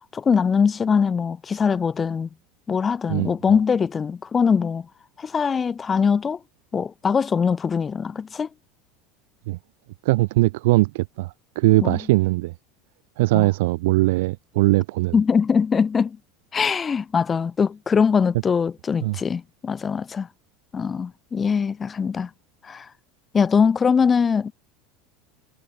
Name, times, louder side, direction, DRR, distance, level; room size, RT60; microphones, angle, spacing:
voice 1, 0.1-2.3 2.7-4.9 5.2-6.4 6.7-8.5 11.8-12.0 13.3-13.5 15.1-16.2 16.5-20.3 20.7-22.3 22.6-22.9 23.3-24.5, left 6 dB, 25° left, 1.1 m, -22 dB
voice 2, 10.0-12.5 13.2-15.1 19.0-19.2, right 21 dB, 65° right, 1.2 m, -20 dB
figure-of-eight pair, 75°, 0 cm